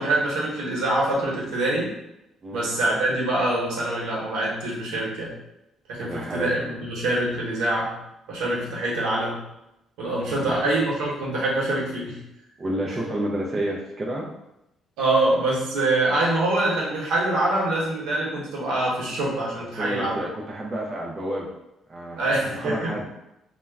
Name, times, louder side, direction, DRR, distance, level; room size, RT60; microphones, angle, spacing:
voice 1, 0.0-1.9 2.5-5.3 5.9-7.9 8.3-9.4 10.0-12.2 15.0-20.2 22.2-22.9, right 2 dB, 90° right, -5 dB, 0.9 m, -24 dB
voice 2, 6.0-6.7 10.2-10.6 12.6-14.3 19.8-21.5 21.9-23.1, right 1 dB, 35° right, -2 dB, 0.4 m, -30 dB
2.2 x 2.1 x 3.4 m, 0.87 s
cardioid pair, 95°, 0 cm